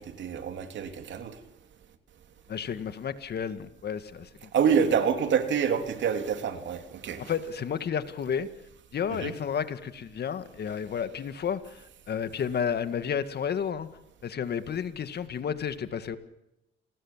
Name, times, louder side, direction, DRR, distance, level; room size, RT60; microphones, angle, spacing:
voice 1, 0.0-1.4 4.5-7.3 9.2-9.3, right 7 dB, 65° right, 7 dB, 3.1 m, -27 dB
voice 2, 2.5-4.5 7.2-8.5 8.9-13.9 14.2-16.2, left 7 dB, 55° left, 11 dB, 1.9 m, -31 dB
28.5 x 20.0 x 7.4 m, 0.94 s
cardioid pair, 90°, 20 cm